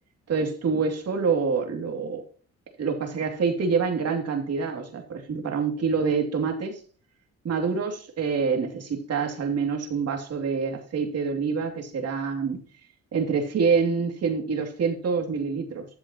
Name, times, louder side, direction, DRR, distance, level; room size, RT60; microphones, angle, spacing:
voice 1, 0.3-2.2 2.8-6.8 7.4-12.6 13.1-15.9, right 5 dB, 55° right, 2.8 m, -26 dB
12.5 x 7.0 x 3.0 m
cardioid pair, 90°, 30 cm